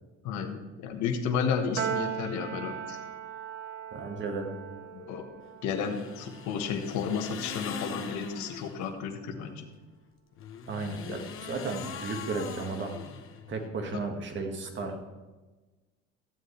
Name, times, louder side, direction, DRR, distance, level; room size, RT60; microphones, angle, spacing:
voice 1, 0.2-3.0 4.9-5.2 5.6-9.7, left 6 dB, 65° left, 4 dB, 1.5 m, -32 dB
Piano, 1.8-8.3, right 8 dB, 90° right, 0.9 m, -39 dB
voice 2, 3.9-4.5 10.7-13.0 13.5-15.0, right 3 dB, 40° right, 4 dB, 1.7 m, -34 dB
sound 1, 5.7-8.9 10.3-13.7, left 7 dB, 45° left, 1.1 m, -42 dB
14.5 x 7.6 x 3.3 m, 1.2 s
supercardioid pair, 105°, 30 cm